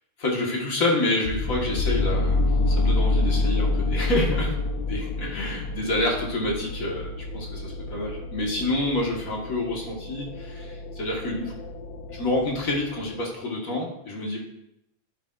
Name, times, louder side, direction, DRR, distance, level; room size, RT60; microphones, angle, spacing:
voice 1, 0.2-11.5 12.1-14.4, left 2 dB, 40° left, -1 dB, 1.3 m, -28 dB
sound 1, 1.3-13.2, left 2 dB, 75° left, 1.8 m, -28 dB
12.0 x 6.8 x 2.5 m, 0.79 s
omnidirectional pair, 3.3 m